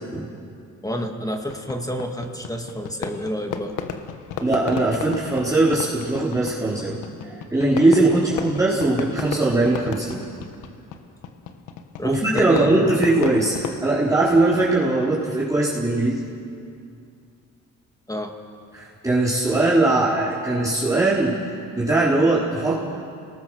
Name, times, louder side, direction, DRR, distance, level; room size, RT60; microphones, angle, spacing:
voice 1, 0.8-3.7 12.0-13.0 18.1-18.3, equal, 10° left, 3 dB, 2.2 m, -29 dB
Fireworks, 1.5-13.8, left 7 dB, 90° left, 1.4 m, -35 dB
voice 2, 4.4-7.0 7.2-10.2 12.0-16.2 18.7-21.4 21.8-22.9, right 2 dB, 10° right, -8 dB, 4.2 m, -20 dB
29.0 x 19.5 x 6.4 m, 2.4 s
cardioid pair, 90°, 30 cm